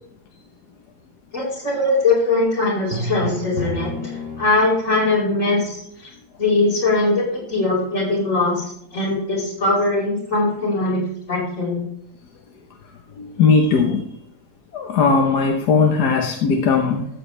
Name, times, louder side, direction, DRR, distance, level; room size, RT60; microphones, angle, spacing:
voice 1, 1.3-5.8 6.4-8.6 8.9-11.0 11.3-11.9, left 2 dB, 50° left, -4 dB, 5.2 m, -21 dB
Drum, 2.9-4.9, left 1 dB, 40° right, 1.9 m, -29 dB
voice 2, 13.2-14.1 14.7-17.1, left 5 dB, 85° left, 2 dB, 1.6 m, -18 dB
13.5 x 8.1 x 3.3 m, 0.72 s
omnidirectional pair, 1.7 m